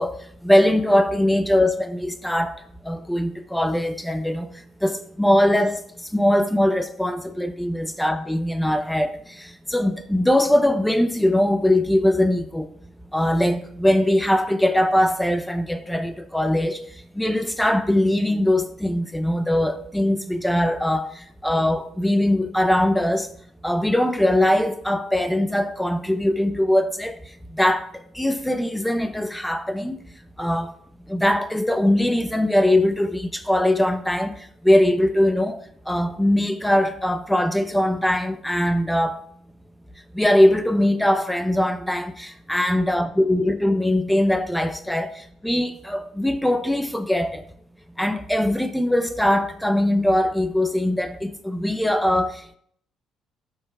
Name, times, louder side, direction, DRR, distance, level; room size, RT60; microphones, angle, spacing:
voice 1, 0.0-2.6 2.8-5.8 6.1-12.7 13.1-16.8 17.2-23.3 23.6-27.2 27.5-30.0 30.4-30.7 31.1-39.2 40.1-47.4 48.0-52.5, left 1 dB, 5° left, 0.6 m, -21 dB
12.0 x 5.6 x 2.3 m
supercardioid pair, 80°, 0 cm